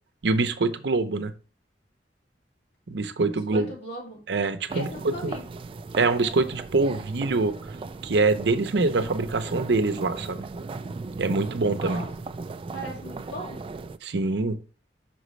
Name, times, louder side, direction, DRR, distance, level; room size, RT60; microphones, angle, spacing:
voice 1, 0.2-1.3 2.9-3.7 4.3-5.3 6.0-7.5 8.0-10.4 11.2-12.0 14.0-14.6, right 3 dB, 70° right, 10 dB, 0.7 m, -24 dB
voice 2, 3.3-4.2 4.7-5.4 11.7-12.1 12.7-13.6, equal, 75° left, -3 dB, 3.0 m, -38 dB
sound 1, 4.7-14.0, right 3 dB, 30° right, 0.3 m, -37 dB
6.0 x 5.1 x 3.1 m, 0.35 s
head